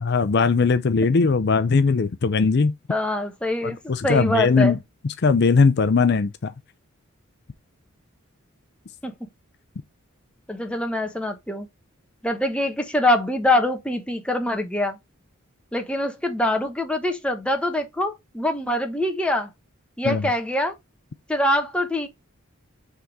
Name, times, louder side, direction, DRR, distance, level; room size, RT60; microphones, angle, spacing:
voice 1, 0.0-2.7 3.6-4.8 5.2-6.5 20.0-20.3, left 4 dB, 50° left, 0.5 m, -19 dB
voice 2, 2.9-3.8 4.0-4.8 9.0-9.1 10.5-11.7 12.2-15.0 15.7-19.5 20.0-20.7 21.3-22.1, left 1 dB, 5° left, 1.0 m, -24 dB
6.5 x 3.6 x 4.7 m
head